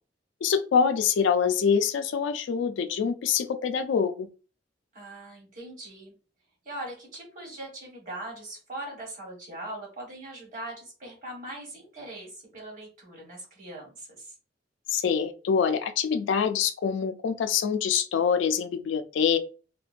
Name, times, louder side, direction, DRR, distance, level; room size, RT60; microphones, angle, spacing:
voice 1, 0.4-4.3 14.9-19.4, left 7 dB, 75° left, 0.3 m, -25 dB
voice 2, 4.9-6.1 6.6-14.3, right 1 dB, 45° right, 1.1 m, -41 dB
2.4 x 2.2 x 2.4 m
head